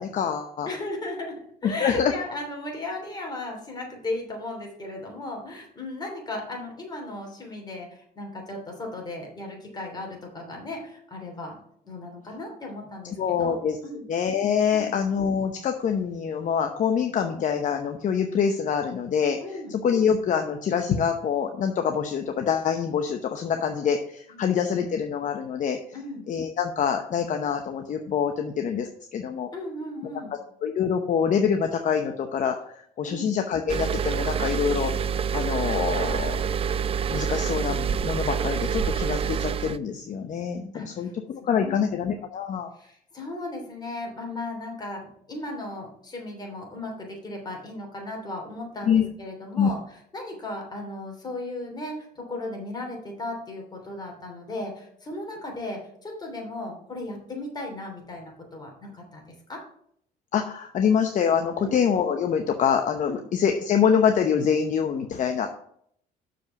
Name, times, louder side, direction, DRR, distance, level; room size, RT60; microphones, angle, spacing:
voice 1, 0.0-0.7 1.6-2.1 13.2-13.8 14.1-25.8 26.3-29.5 30.0-30.1 30.6-32.6 33.0-34.9 35.3-36.4 37.1-42.7 48.8-49.0 49.6-49.7 60.3-65.5, left 7 dB, 50° left, 5 dB, 0.8 m, -25 dB
voice 2, 0.7-11.6 11.8-13.5 13.8-14.0 14.7-14.9 19.4-19.7 24.3-24.4 25.9-26.3 29.5-30.3 33.0-33.3 40.7-41.1 41.5-41.9 42.7-59.6 61.6-61.8 63.1-63.2, left 2 dB, 25° left, 1 dB, 3.2 m, -36 dB
sound 1, 33.7-39.8, right 7 dB, 35° right, 0.4 m, -27 dB
6.6 x 5.1 x 7.1 m, 0.66 s
cardioid pair, 110°, 17 cm